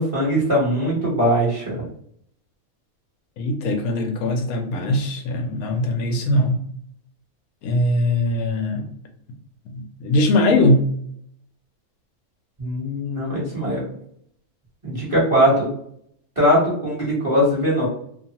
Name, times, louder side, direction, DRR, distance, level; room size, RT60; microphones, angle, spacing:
voice 1, 0.0-1.8 12.6-13.8 14.8-15.7 16.4-17.9, equal, 25° right, -6 dB, 0.9 m, -20 dB
voice 2, 3.4-6.6 7.6-8.8 9.7-10.8, left 1 dB, 80° left, 3 dB, 1.0 m, -21 dB
2.7 x 2.3 x 2.8 m, 0.68 s
omnidirectional pair, 1.5 m